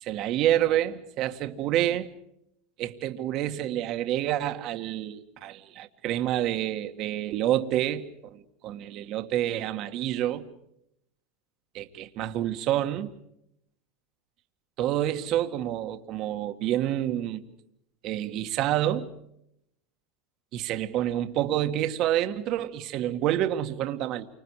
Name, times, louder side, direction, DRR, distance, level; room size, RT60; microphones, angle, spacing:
voice 1, 0.0-2.1 2.8-10.5 11.7-13.1 14.8-17.4 18.0-19.1 20.5-24.3, right 12 dB, 45° right, 1.9 m, -28 dB
29.0 x 25.5 x 4.9 m
supercardioid pair, 135°, 0 cm